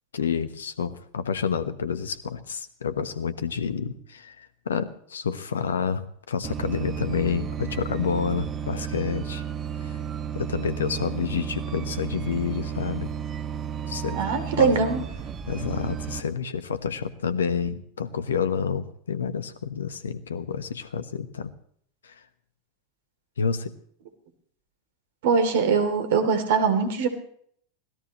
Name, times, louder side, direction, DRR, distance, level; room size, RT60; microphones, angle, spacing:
voice 1, 0.1-9.4 9.8-10.0 10.3-13.1 13.9-14.2 14.5-14.7 15.5-21.5 22.0-22.1 23.4-23.7, left 6 dB, 75° left, 13 dB, 1.3 m, -29 dB
sound 1, 6.4-16.2, right 8 dB, 35° right, 1.9 m, -33 dB
voice 2, 14.1-15.0 25.2-27.1, right 5 dB, 65° right, 7 dB, 3.2 m, -22 dB
25.0 x 17.5 x 3.2 m, 0.63 s
figure-of-eight pair, 85°, 0 cm